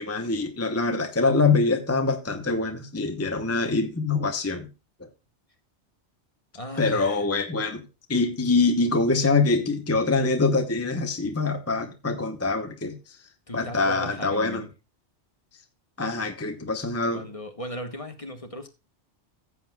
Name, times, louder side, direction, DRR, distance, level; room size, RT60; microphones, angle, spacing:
voice 1, 0.0-4.7 5.0-5.1 6.8-7.8 8.1-13.0 13.5-14.6 16.0-17.3, left 3 dB, 15° left, 0.9 m, -24 dB
voice 2, 6.5-7.2 13.5-14.7 17.1-18.7, equal, 30° left, 1.2 m, -37 dB
16.0 x 7.7 x 2.3 m
omnidirectional pair, 1.2 m